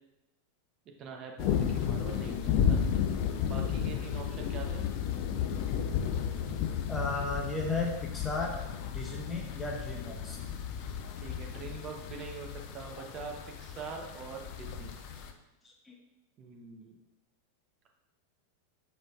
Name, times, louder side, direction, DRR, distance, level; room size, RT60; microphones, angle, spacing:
voice 1, 1.0-2.8 3.4-4.8 11.2-13.3 13.6-14.9 16.4-17.0, right 5 dB, 30° right, 2 dB, 0.8 m, -43 dB
sound 1, 1.4-15.3, left 8 dB, 45° left, 0.4 m, -33 dB
voice 2, 6.9-8.5 8.9-10.4 15.8-15.9, left 3 dB, 10° left, -1 dB, 0.7 m, -34 dB
5.0 x 4.1 x 2.4 m, 0.96 s
figure-of-eight pair, 90°, 0 cm